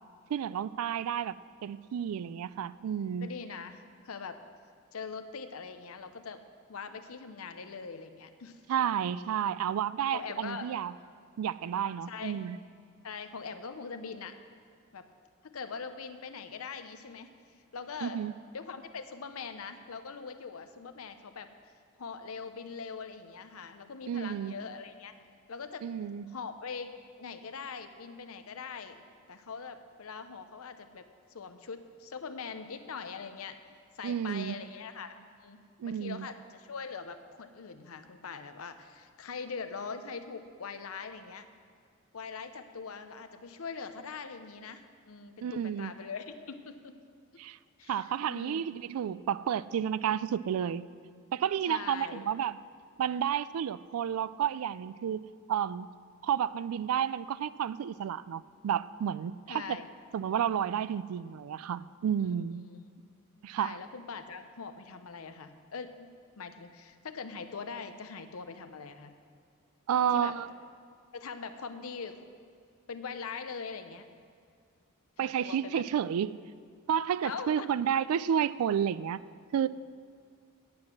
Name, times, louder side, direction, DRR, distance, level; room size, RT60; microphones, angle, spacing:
voice 1, 0.3-1.3 1.6-3.3 8.7-10.9 11.4-12.6 18.0-18.3 24.1-24.5 25.8-26.3 34.0-34.6 35.8-36.3 45.4-45.9 47.4-47.6 47.9-50.9 51.3-52.6 53.0-55.2 55.5-55.9 56.2-59.8 60.1-62.6 63.4-63.8 69.9-70.5 75.2-76.4 76.9-79.2 79.5-79.7, right 9 dB, 75° right, 17 dB, 0.3 m, -31 dB
voice 2, 3.2-4.4 4.9-6.4 6.7-8.6 10.1-10.7 12.1-12.4 13.0-14.4 14.9-15.1 15.4-17.3 17.7-18.3 18.5-21.7 22.0-25.1 25.5-25.9 26.3-26.9 27.2-29.0 29.3-33.6 34.0-35.6 35.8-41.5 42.1-46.9 47.8-48.6 51.6-52.3 59.5-59.9 62.2-62.4 62.7-62.8 63.5-66.1 66.4-69.1 70.1-70.3 71.1-72.3 72.9-74.1 75.2-75.8 77.2-77.7, left 5 dB, 75° left, 9 dB, 0.7 m, -42 dB
9.6 x 8.7 x 6.0 m, 2.2 s
head